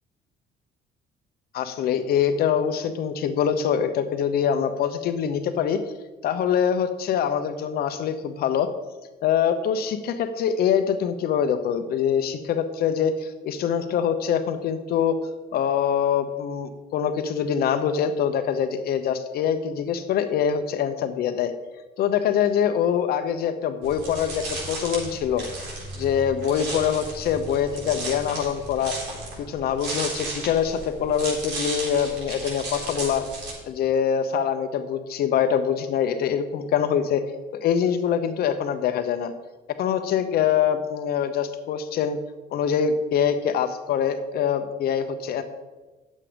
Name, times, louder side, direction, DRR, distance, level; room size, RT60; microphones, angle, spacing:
voice 1, 1.5-5.8 6.2-8.7 9.2-15.2 15.5-21.5 22.0-25.4 26.0-29.0 29.5-33.3 33.7-37.2 37.6-39.3 39.8-42.2 42.5-45.4, left 8 dB, 65° left, 10 dB, 0.8 m, -24 dB
sound 1, 23.8-33.5, right 2 dB, 80° right, 3.8 m, -34 dB
10.0 x 7.4 x 5.1 m, 1.2 s
cardioid pair, 110°, 17 cm